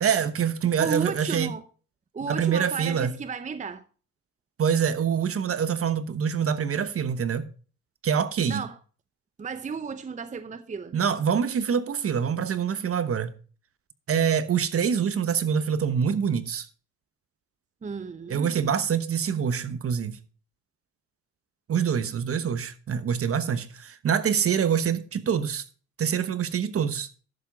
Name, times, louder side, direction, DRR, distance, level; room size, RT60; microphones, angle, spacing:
voice 1, 0.0-1.5 2.2-3.1 4.6-7.5 8.0-8.6 10.9-13.3 14.1-16.7 18.3-20.2 21.7-25.6 26.0-27.1, right 7 dB, 50° right, 1.1 m, -25 dB
voice 2, 0.8-1.6 2.1-3.8 8.5-8.8 9.4-10.9 17.8-18.7, right 5 dB, 25° right, 0.6 m, -33 dB
11.5 x 7.4 x 4.7 m
cardioid pair, 90°, 30 cm